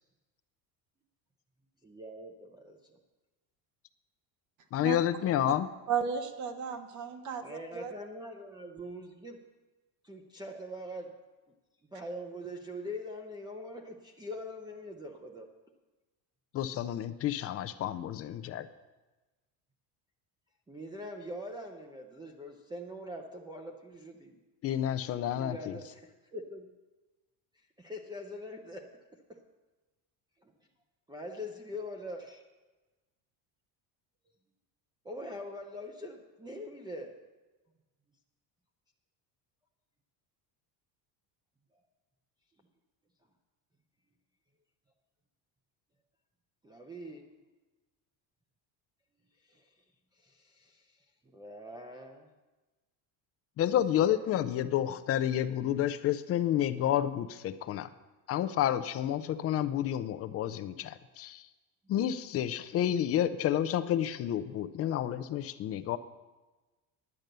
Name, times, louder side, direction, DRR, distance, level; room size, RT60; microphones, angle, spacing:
voice 1, 1.8-2.8 7.4-9.5 10.0-11.2 11.9-15.5 20.7-24.4 25.3-26.7 27.8-28.9 29.3-29.4 30.4-30.5 31.1-32.4 35.0-37.2 46.6-47.3 49.5-49.7 50.2-51.0 51.3-52.3 53.6-53.8 54.0-55.0, equal, 10° right, 2 dB, 0.6 m, -43 dB
voice 2, 4.7-5.7 16.5-18.7 24.6-25.8 53.6-57.9 58.3-61.4 61.9-66.0, left 11 dB, 35° left, 12 dB, 0.4 m, -30 dB
voice 3, 5.9-7.9, right 7 dB, 40° right, 9 dB, 1.0 m, -34 dB
10.5 x 8.8 x 6.6 m, 1.2 s
cardioid pair, 165°, 43 cm